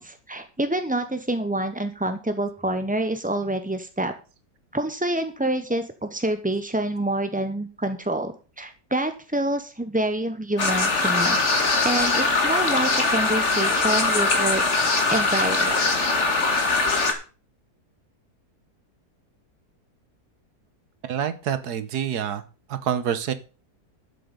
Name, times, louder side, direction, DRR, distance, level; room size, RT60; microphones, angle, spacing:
voice 1, 0.0-4.1 4.7-14.6 15.1-15.9, right 1 dB, 10° right, 8 dB, 0.4 m, -27 dB
sound 1, 10.6-17.1, left 3 dB, 45° left, 2.1 m, -22 dB
voice 2, 21.0-22.4 22.7-23.3, right 9 dB, 80° right, 11 dB, 1.6 m, -27 dB
11.5 x 7.6 x 5.2 m, 0.35 s
omnidirectional pair, 1.7 m